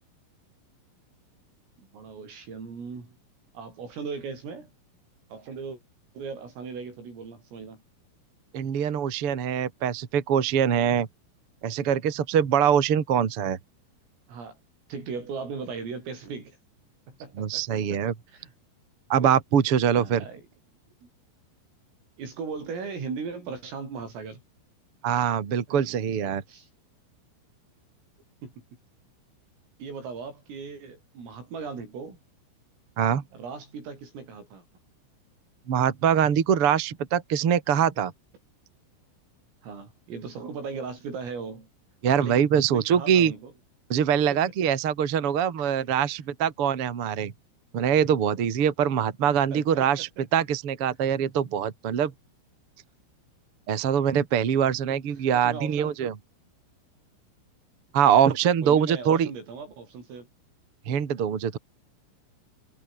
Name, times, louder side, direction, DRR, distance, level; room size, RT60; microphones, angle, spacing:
voice 1, 1.8-3.2 3.6-4.7 5.3-5.8 6.2-7.8 14.3-14.6 14.9-16.6 17.1-18.0 18.3-18.5 19.2-19.3 20.0-20.4 21.0-21.1 22.2-24.4 25.7-26.7 28.4-28.5 29.8-32.2 33.3-34.6 39.6-41.7 42.2-43.5 44.3-44.7 45.9-46.0 49.5-50.1 55.3-56.0 58.6-60.3, right 5 dB, 80° right, 10.5 m, -38 dB
voice 2, 8.5-11.1 11.6-13.6 17.4-18.1 19.1-20.2 25.0-26.4 33.0-33.2 35.7-38.1 42.0-43.3 43.9-47.3 47.7-52.1 53.7-56.1 57.9-59.3 60.9-61.6, right 8 dB, 45° right, 1.9 m, -23 dB
omnidirectional pair, 5.9 m